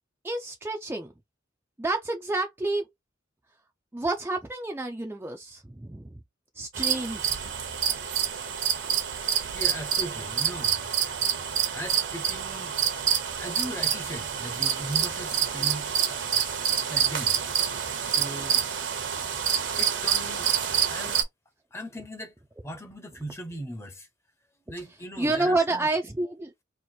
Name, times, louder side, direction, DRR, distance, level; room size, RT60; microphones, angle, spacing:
voice 1, 0.2-1.1 1.8-2.9 3.9-6.1 6.6-7.4 25.2-26.5, right 2 dB, 10° right, 0.4 m, -29 dB
sound 1, 6.7-21.2, right 8 dB, 70° right, 0.9 m, -27 dB
voice 2, 9.5-10.8 11.7-12.8 13.4-17.3 18.2-18.6 19.8-20.5 20.9-21.2 21.7-22.3 22.6-24.1 24.7-25.9, equal, 15° left, 0.8 m, -38 dB
3.0 x 2.5 x 4.1 m
head